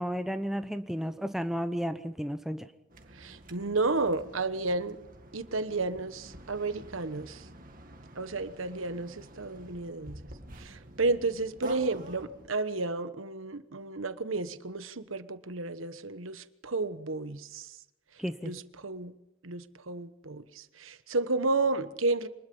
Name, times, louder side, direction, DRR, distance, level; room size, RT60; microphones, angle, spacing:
voice 1, 0.0-2.7 18.2-18.5, equal, ahead, 8 dB, 0.7 m, -33 dB
pig head slides wet, 2.9-12.5, right 1 dB, 45° right, 2.0 m, -48 dB
voice 2, 3.1-5.0 5.3-7.5 8.2-10.2 10.6-17.8 18.4-19.1 19.4-22.3, right 3 dB, 85° right, 12 dB, 1.2 m, -32 dB
25.5 x 20.5 x 5.5 m, 0.94 s
head